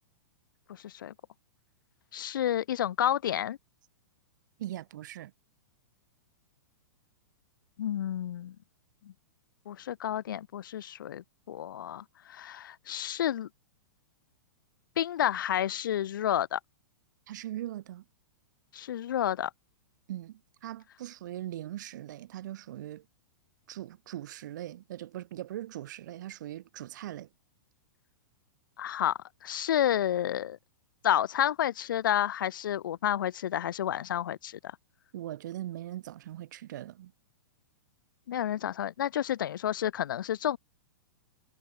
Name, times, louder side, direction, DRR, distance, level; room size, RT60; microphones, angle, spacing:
voice 1, 2.1-3.6 7.8-8.6 9.7-13.5 15.0-16.6 18.7-19.5 28.8-30.6 31.0-34.6 38.3-40.6, left 11 dB, 80° left, 0.5 m, -30 dB
voice 2, 4.6-5.3 17.3-18.0 20.1-23.0 23.7-27.3 35.1-37.1, right 13 dB, 65° right, 0.8 m, -40 dB
hypercardioid pair, 130°, 11 cm